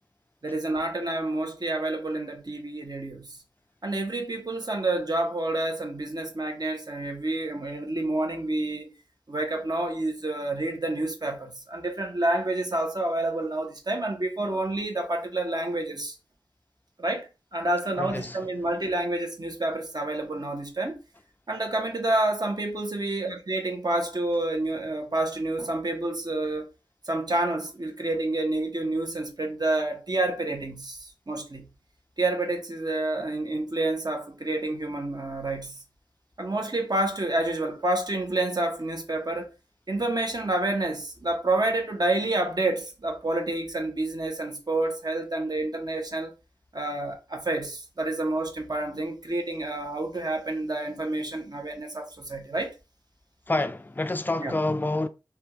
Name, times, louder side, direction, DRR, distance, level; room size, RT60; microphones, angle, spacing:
voice 1, 0.4-3.3 3.8-8.9 9.3-16.1 17.0-21.0 21.5-26.7 27.1-31.7 32.2-35.8 36.4-39.5 39.9-46.3 46.7-52.7 54.4-54.5, right 2 dB, 50° right, 0.9 m, -28 dB
voice 2, 18.0-18.4 53.5-55.1, left 2 dB, 20° left, 0.3 m, -27 dB
3.4 x 2.3 x 2.8 m
wide cardioid pair, 55°, 9 cm